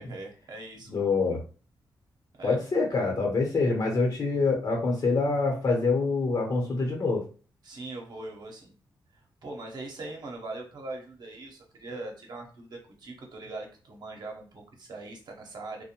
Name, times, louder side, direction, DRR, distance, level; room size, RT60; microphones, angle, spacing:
voice 1, 0.0-1.1 2.3-2.6 7.6-8.7 9.1-15.8, right 2 dB, 60° right, 1 dB, 0.8 m, -41 dB
voice 2, 0.9-1.4 2.4-7.2, left 3 dB, 50° left, 1 dB, 0.9 m, -25 dB
2.5 x 2.2 x 2.9 m, 0.38 s
cardioid pair, 105°, 8 cm